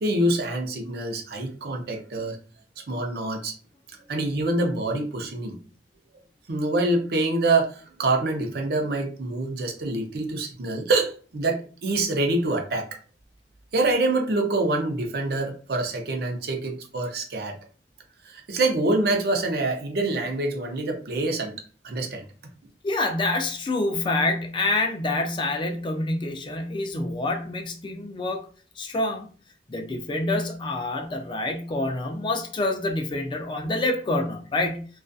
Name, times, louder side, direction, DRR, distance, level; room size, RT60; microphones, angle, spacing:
voice 1, 0.0-2.4 2.9-3.5 4.1-5.6 6.5-12.9 13.7-17.6 18.2-21.5 21.8-22.2, right 2 dB, 60° right, 0.5 m, -25 dB
voice 2, 22.8-28.4 28.8-29.3 29.7-34.9, left 2 dB, 25° left, 0.3 m, -27 dB
2.5 x 2.3 x 2.3 m
head